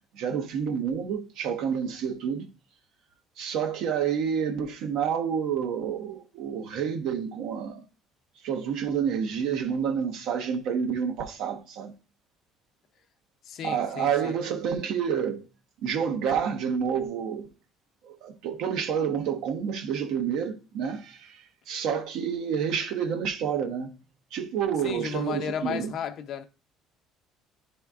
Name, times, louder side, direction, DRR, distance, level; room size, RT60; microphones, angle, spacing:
voice 1, 0.1-2.5 3.4-7.8 8.4-11.9 13.6-15.4 15.8-17.5 18.0-24.0 24.3-25.9, right 7 dB, 75° right, 1.1 m, -29 dB
voice 2, 13.4-14.3 24.8-26.4, left 8 dB, 55° left, 0.6 m, -34 dB
10.5 x 4.2 x 2.4 m
cardioid pair, 130°, 0 cm